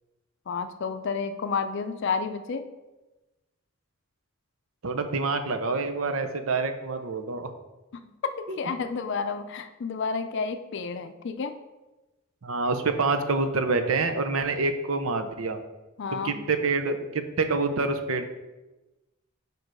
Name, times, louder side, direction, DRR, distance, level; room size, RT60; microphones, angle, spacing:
voice 1, 0.5-2.6 7.9-11.6 16.0-16.4, left 5 dB, 60° left, 9 dB, 0.4 m, -31 dB
voice 2, 4.8-7.5 8.5-8.6 12.4-15.6 16.2-18.3, right 3 dB, 80° right, 7 dB, 0.7 m, -27 dB
5.2 x 4.6 x 6.1 m, 1.1 s
head